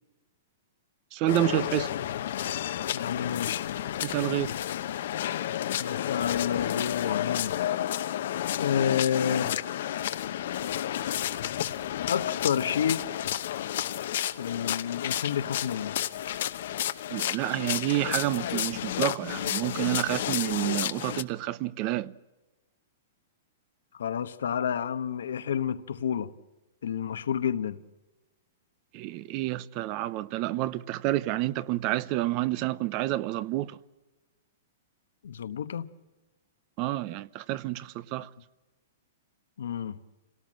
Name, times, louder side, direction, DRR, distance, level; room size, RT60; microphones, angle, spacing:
voice 1, 1.1-1.9 4.0-4.5 17.1-22.1 28.9-33.8 36.8-38.3, right 16 dB, 40° right, 0.7 m, -29 dB
sound 1, 1.3-21.2, left 11 dB, 65° left, 1.0 m, -31 dB
voice 2, 2.9-3.6 5.8-7.6 8.6-9.6 12.1-13.1 14.4-16.0 23.9-26.3 26.8-27.8 35.2-35.9 39.6-40.0, left 8 dB, 85° left, 1.2 m, -29 dB
26.5 x 18.0 x 7.6 m
hypercardioid pair, 145°, 0 cm